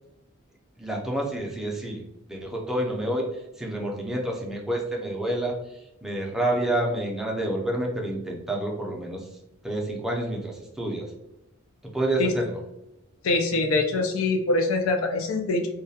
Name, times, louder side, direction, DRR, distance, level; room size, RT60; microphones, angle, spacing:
voice 1, 0.8-2.0 2.3-3.3 3.6-5.5 6.0-9.2 9.6-11.1 11.9-12.5, right 1 dB, ahead, -2 dB, 0.4 m, -28 dB
voice 2, 13.2-15.7, left 2 dB, 75° left, 5 dB, 0.4 m, -24 dB
2.3 x 2.1 x 2.7 m, 0.88 s
head